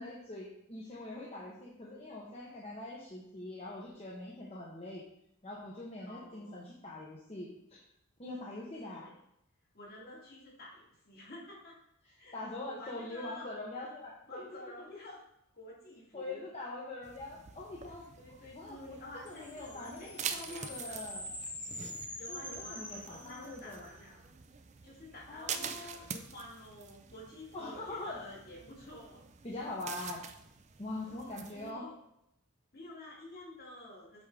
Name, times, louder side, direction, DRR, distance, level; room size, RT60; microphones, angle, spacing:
voice 1, 0.0-5.0 5.4-7.8 8.2-9.1 12.3-14.7 16.1-18.1 18.5-19.0 19.2-21.3 22.3-23.8 25.3-26.1 27.5-28.2 29.4-30.3 30.8-31.9, left 2 dB, 30° left, -4 dB, 1.0 m, -43 dB
voice 2, 6.1-6.6 8.8-9.2 9.7-11.8 12.2-13.5 14.3-15.2 15.5-16.4 18.2-21.0 22.2-24.2 24.8-29.2 31.0-31.1 31.4-31.9 32.7-34.2, left 1 dB, 45° left, -5 dB, 2.7 m, -50 dB
sound 1, 17.0-31.7, right 7 dB, 35° right, 0.4 m, -46 dB
sound 2, 19.3-23.9, left 1 dB, 5° left, 1.2 m, -45 dB
7.8 x 3.7 x 4.9 m, 0.79 s
head